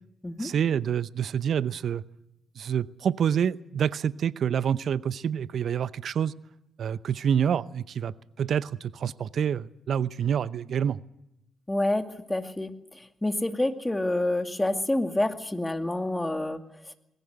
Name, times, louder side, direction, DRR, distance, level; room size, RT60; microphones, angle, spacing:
voice 1, 0.4-2.0 2.6-6.3 6.8-11.0, right 8 dB, 60° right, 18 dB, 0.7 m, -27 dB
voice 2, 11.7-16.6, left 1 dB, 15° left, 7 dB, 2.3 m, -28 dB
20.0 x 17.5 x 8.1 m, 0.87 s
hypercardioid pair, 45°, 0 cm